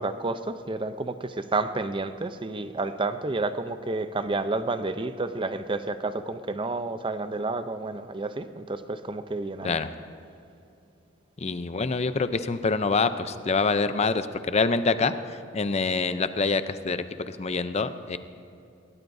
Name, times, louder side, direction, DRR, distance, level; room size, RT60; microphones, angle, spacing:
voice 1, 0.0-9.8, right 3 dB, 25° right, 10 dB, 0.6 m, -30 dB
voice 2, 11.4-15.1 15.5-18.2, left 4 dB, 35° left, 11 dB, 0.6 m, -26 dB
21.5 x 17.5 x 2.7 m, 2.6 s
head